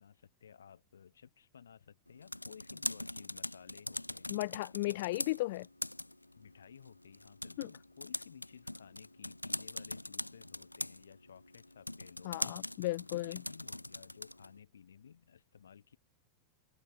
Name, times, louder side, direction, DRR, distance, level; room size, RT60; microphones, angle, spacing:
voice 1, 0.0-4.3 4.9-5.1 6.4-12.4 13.1-16.0, left 7 dB, 70° left, 7.5 m, -56 dB
sound 1, 2.1-14.6, left 1 dB, 85° left, 0.8 m, -43 dB
voice 2, 4.3-5.7 7.6-7.7 12.2-13.4, left 19 dB, 50° left, 1.3 m, -35 dB
figure-of-eight pair, 90°, 0 cm